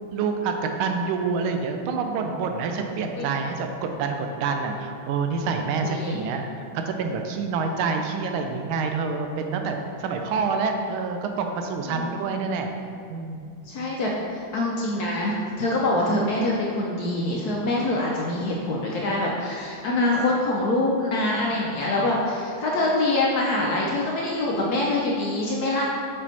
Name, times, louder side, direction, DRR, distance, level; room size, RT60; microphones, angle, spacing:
voice 1, 0.1-0.5 0.8-12.7 13.1-13.4, right 4 dB, 85° right, 4 dB, 1.4 m, -27 dB
voice 2, 5.8-6.2 7.6-7.8 11.9-12.2 13.6-25.8, left 2 dB, 70° left, -3 dB, 0.9 m, -25 dB
5.4 x 5.2 x 4.1 m, 2.4 s
omnidirectional pair, 2.3 m